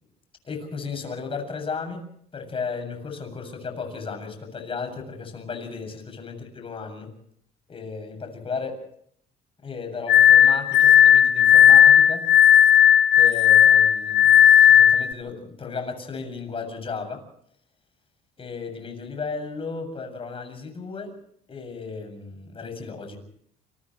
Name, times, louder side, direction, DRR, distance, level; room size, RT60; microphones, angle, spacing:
voice 1, 0.4-7.1 7.7-8.8 9.6-12.3 13.1-17.2 18.4-21.2 21.5-23.2, left 5 dB, 30° left, 6 dB, 7.5 m, -34 dB
Glass, 10.1-15.1, left 10 dB, 80° left, 1.0 m, -14 dB
30.0 x 28.0 x 3.2 m, 0.64 s
cardioid pair, 110°, 17 cm